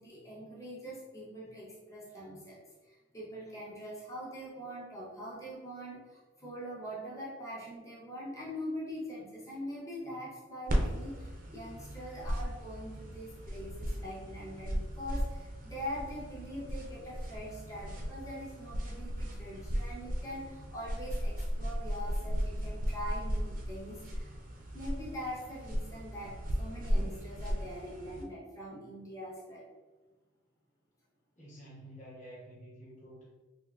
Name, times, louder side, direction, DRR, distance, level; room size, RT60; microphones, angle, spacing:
voice 1, 0.0-24.3 24.7-29.7, equal, 15° left, -6 dB, 0.8 m, -43 dB
sound 1, 10.7-28.2, equal, 40° right, 0.4 m, -36 dB
voice 2, 31.4-33.3, right 1 dB, 35° left, -6 dB, 1.1 m, -50 dB
3.6 x 2.6 x 2.4 m, 1.2 s
head